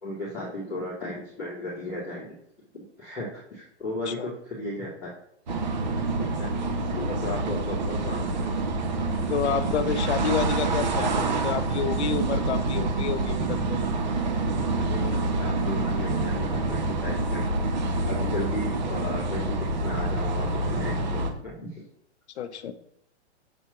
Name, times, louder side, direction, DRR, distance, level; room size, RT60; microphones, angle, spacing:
voice 1, 0.0-2.3 2.7-5.1 5.5-5.6 6.2-6.5 6.9-8.5 14.8-17.4 18.1-21.8, left 1 dB, ahead, -20 dB, 0.4 m, -35 dB
sound 1, 5.5-21.3, right 2 dB, 40° right, 0.8 m, -27 dB
voice 2, 9.3-13.8 22.4-22.7, left 8 dB, 70° left, 12 dB, 0.7 m, -29 dB
7.0 x 2.9 x 5.8 m, 0.76 s
hypercardioid pair, 175°, 35 cm